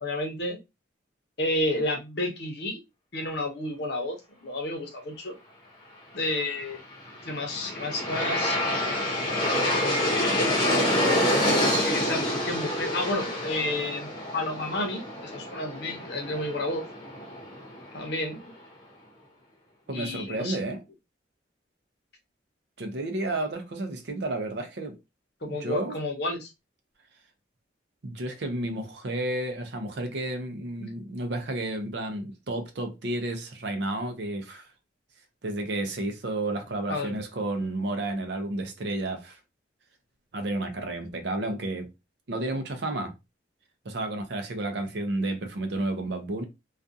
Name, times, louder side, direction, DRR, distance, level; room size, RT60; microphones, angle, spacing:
voice 1, 0.0-0.6 1.4-2.8 3.1-5.3 6.1-6.8 7.2-8.6 9.8-10.5 11.7-16.8 17.9-18.5 19.9-20.6 25.4-26.5 36.9-37.1, left 1 dB, 55° left, 0.7 m, -31 dB
Aircraft, 7.0-18.1, left 1 dB, 25° left, 0.7 m, -27 dB
voice 2, 19.9-20.8 22.8-25.0 25.5-26.0 28.0-34.7 35.4-39.4 40.3-41.9 42.3-43.1 43.8-46.4, right 2 dB, 60° right, 0.5 m, -31 dB
2.4 x 2.3 x 2.6 m
head